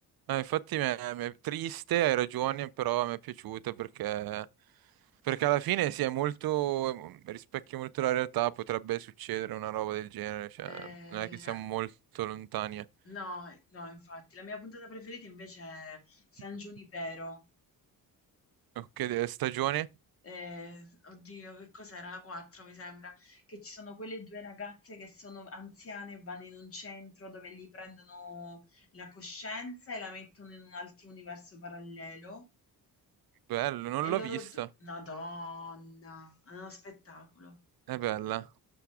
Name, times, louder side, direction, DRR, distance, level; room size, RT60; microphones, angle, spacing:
voice 1, 0.3-4.5 5.2-11.9 12.1-12.8 18.8-19.9 33.5-34.7 37.9-38.5, right 14 dB, 70° right, 0.5 m, -32 dB
voice 2, 10.7-11.6 13.1-17.4 20.2-32.5 34.0-37.6, left 2 dB, 35° left, 2.2 m, -44 dB
7.0 x 5.9 x 4.8 m
wide cardioid pair, 175°, 37 cm